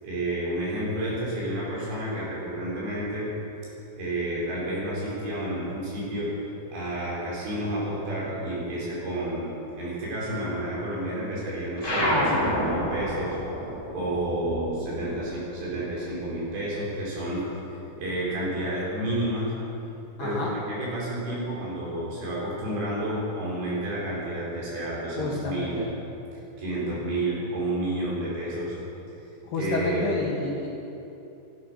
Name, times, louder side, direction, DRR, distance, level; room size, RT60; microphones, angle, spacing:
voice 1, 0.0-3.3 4.0-6.3 6.7-9.5 9.7-13.4 13.9-17.4 18.0-19.5 20.2-25.8 26.6-28.8 29.6-30.1, right 1 dB, 70° right, -6 dB, 6.6 m, -30 dB
sound 1, 11.8-16.7 17.0-18.4, left 1 dB, 15° left, 0.9 m, -29 dB
voice 2, 20.2-20.5 25.2-25.9 29.4-30.7, left 2 dB, 65° left, -3 dB, 2.5 m, -29 dB
14.5 x 12.0 x 6.3 m, 2.9 s
omnidirectional pair, 5.4 m